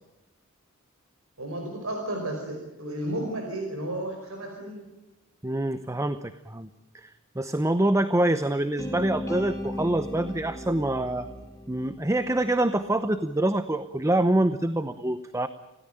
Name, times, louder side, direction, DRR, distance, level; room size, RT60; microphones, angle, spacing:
voice 1, 1.4-4.8, right 1 dB, 85° right, 2 dB, 5.0 m, -33 dB
voice 2, 5.4-6.7 6.9-11.3 11.7-15.5, right 1 dB, 15° right, 11 dB, 0.8 m, -25 dB
sound 1, 8.8-12.9, equal, 15° left, 3.0 m, -37 dB
26.5 x 17.5 x 9.0 m, 1.1 s
head